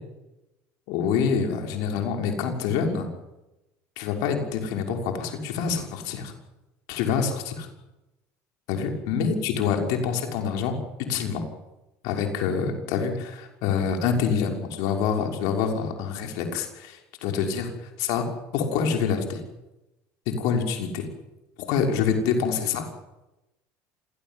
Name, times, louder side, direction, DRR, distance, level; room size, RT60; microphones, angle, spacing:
voice 1, 0.9-3.1 4.0-6.3 6.9-7.7 8.7-11.4 12.0-17.7 18.0-18.2 18.5-19.4 20.3-21.1 21.7-22.9, left 6 dB, 75° left, 3 dB, 6.0 m, -26 dB
27.5 x 17.5 x 9.4 m, 0.97 s
supercardioid pair, 100°, 7 cm